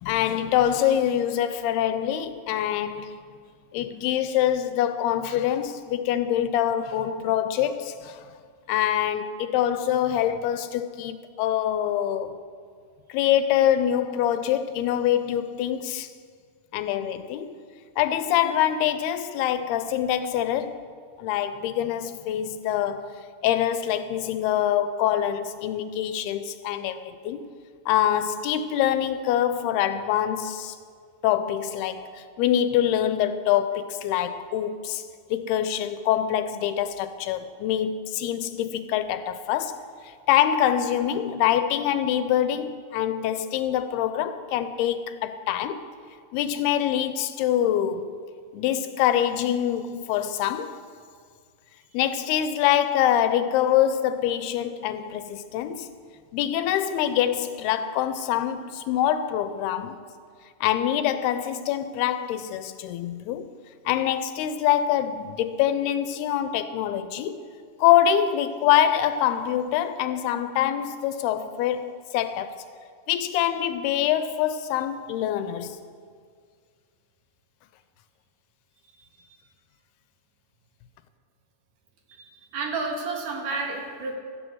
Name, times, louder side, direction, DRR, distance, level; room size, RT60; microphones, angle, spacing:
voice 1, 0.0-3.1 3.7-8.2 8.7-12.4 13.1-16.1 16.7-17.5 18.0-20.8 21.2-27.5 27.9-30.8 31.2-35.0 35.3-39.9 40.3-45.9 46.3-48.1 48.5-50.8 51.9-55.9 56.3-60.0 60.6-63.5 63.9-67.4 67.8-72.6 73.1-75.8, left 10 dB, 85° left, 2.8 m, -25 dB
voice 2, 82.1-84.2, right 3 dB, 60° right, 3.2 m, -31 dB
17.0 x 13.0 x 6.4 m
omnidirectional pair, 4.5 m